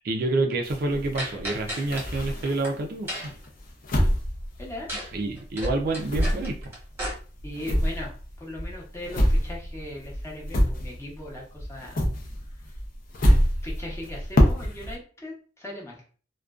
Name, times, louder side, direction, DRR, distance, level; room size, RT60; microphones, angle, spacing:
voice 1, 0.0-3.3 5.1-6.7, right 2 dB, 55° right, 3 dB, 0.4 m, -28 dB
sound 1, 0.6-2.8 3.2-5.3 5.6-11.3 11.6-15.0, equal, 50° left, 0.5 m, -26 dB
sound 2, 1.2-2.0 2.4-2.7 3.1-3.5 4.9-5.1 5.4-7.1, equal, 15° right, 0.9 m, -34 dB
voice 2, 7.4-12.0 13.6-16.0, left 1 dB, 15° left, -4 dB, 0.7 m, -39 dB
2.4 x 2.2 x 2.3 m, 0.40 s
head